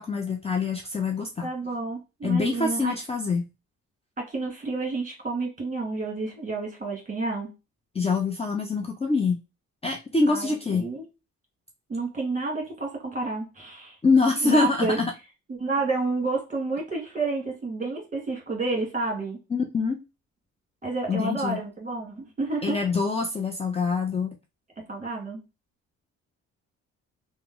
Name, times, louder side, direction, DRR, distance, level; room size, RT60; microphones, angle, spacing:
voice 1, 0.0-1.5 2.2-3.5 7.9-9.4 9.8-10.9 14.0-15.1 19.5-20.0 21.1-21.6 22.6-24.4, left 4 dB, 20° left, 2 dB, 0.6 m, -25 dB
voice 2, 1.4-2.9 4.2-7.5 10.3-11.0 11.9-13.9 14.4-15.0 15.5-19.4 20.8-22.8 24.8-25.4, right 3 dB, 25° right, 1 dB, 1.6 m, -30 dB
3.0 x 2.1 x 3.6 m, 0.26 s
cardioid pair, 90°, 30 cm